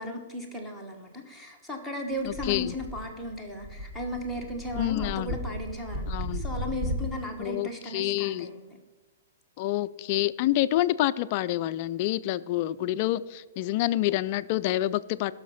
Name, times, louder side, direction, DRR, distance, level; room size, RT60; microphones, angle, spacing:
voice 1, 0.0-8.8, left 1 dB, 5° right, 1 dB, 1.2 m, -36 dB
voice 2, 2.2-2.7 4.8-5.4 6.1-6.5 7.4-8.5 9.6-15.3, left 14 dB, 30° left, 13 dB, 0.4 m, -27 dB
sound 1, 2.2-7.1, equal, 25° right, 1.4 m, -35 dB
16.5 x 6.3 x 5.8 m, 1.2 s
hypercardioid pair, 170°, 0 cm